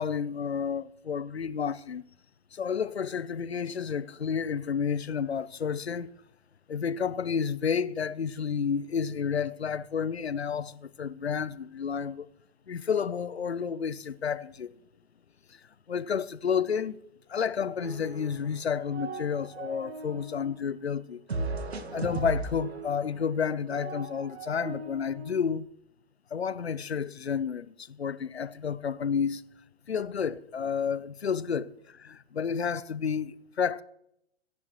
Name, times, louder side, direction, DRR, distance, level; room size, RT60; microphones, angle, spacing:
voice 1, 0.0-2.0 2.5-6.1 6.7-12.3 12.7-14.7 15.5-15.6 15.9-17.0 17.3-21.2 21.9-25.7 26.3-29.4 29.9-33.8, left 6 dB, 75° left, 0.8 m, -31 dB
sound 1, 17.8-18.6 18.8-20.5 21.3-25.4, right 3 dB, 75° right, 1.5 m, -37 dB
26.0 x 11.0 x 3.1 m
figure-of-eight pair, 115°, 32 cm